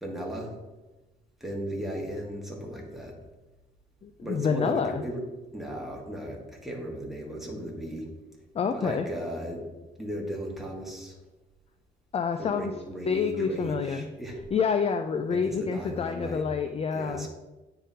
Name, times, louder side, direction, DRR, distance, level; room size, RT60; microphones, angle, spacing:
voice 1, 0.0-0.5 1.4-3.1 4.2-5.2 5.5-8.1 8.7-9.7 10.0-11.2 12.4-14.4 15.3-16.5 16.9-17.3, equal, ahead, -2 dB, 1.6 m, -36 dB
voice 2, 4.0-5.0 8.5-9.1 12.1-12.7 13.1-14.1 14.5-17.3, left 6 dB, 30° left, 7 dB, 0.4 m, -28 dB
9.6 x 3.8 x 2.8 m, 1.1 s
cardioid pair, 90°, 20 cm